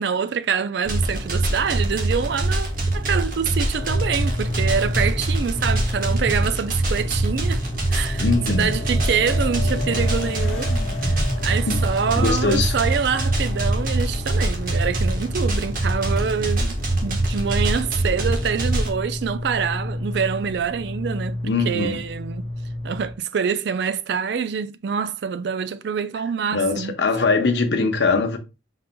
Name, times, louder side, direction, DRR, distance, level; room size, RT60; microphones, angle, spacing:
voice 1, 0.0-7.6 7.9-10.7 11.1-21.4 21.6-22.5 22.8-26.9, right 6 dB, 65° right, 0.4 m, -26 dB
sound 1, 0.8-18.9, right 1 dB, 45° right, 1.2 m, -24 dB
sound 2, 3.7-23.1, left 1 dB, 30° left, 0.7 m, -31 dB
Motorcycle / Accelerating revving vroom, 4.5-13.3, equal, 5° left, 1.8 m, -37 dB
voice 2, 8.2-8.7 11.7-11.8 12.2-12.7 21.5-22.0 26.5-28.4, left 3 dB, 70° left, 0.8 m, -21 dB
5.3 x 3.9 x 2.2 m
head